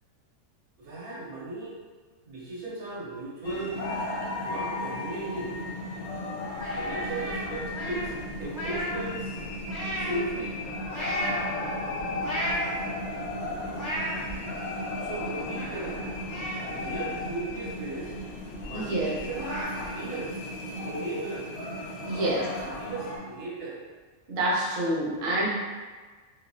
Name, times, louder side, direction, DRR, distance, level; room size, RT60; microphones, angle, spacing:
voice 1, 0.8-1.7 2.2-3.7 4.4-5.6 6.7-8.1 8.4-9.4 10.0-10.6 15.0-16.3 16.7-18.1 18.6-20.4 20.8-21.5 22.0-23.8, right 2 dB, 85° right, -7 dB, 1.4 m, -36 dB
sound 1, 3.4-23.2, left 2 dB, 65° left, 0.7 m, -35 dB
sound 2, 6.6-9.1 9.4-10.3 10.8-11.4 12.0-13.0 13.4-14.2 14.7-14.8 15.0-15.9 16.3-17.8 18.2-18.3 18.6-18.7 19.0-19.6, equal, 30° left, 0.3 m, -34 dB
voice 2, 18.7-19.1 22.0-22.4 24.3-25.5, right 1 dB, 50° right, -6 dB, 0.7 m, -27 dB
3.0 x 2.3 x 2.5 m, 1.4 s
omnidirectional pair, 1.5 m